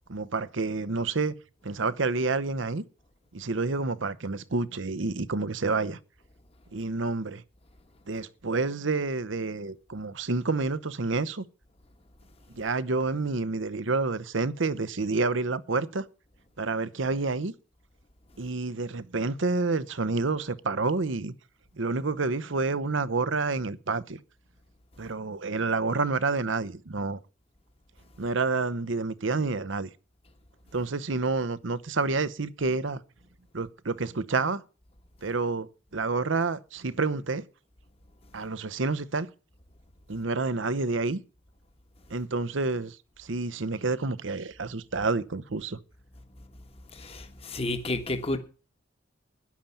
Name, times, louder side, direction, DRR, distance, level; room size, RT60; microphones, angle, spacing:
voice 1, 0.1-1.3 1.6-2.8 3.3-6.0 6.7-7.4 8.1-11.4 12.5-16.1 16.6-17.5 18.4-21.3 21.8-24.2 25.0-27.2 28.2-29.9 30.7-33.0 33.5-34.6 35.2-37.4 38.3-39.3 40.1-41.2 42.1-45.8, right 3 dB, 70° right, 0.9 m, -29 dB
voice 2, 46.9-48.4, left 2 dB, 30° left, 1.4 m, -31 dB
13.0 x 10.5 x 5.6 m
head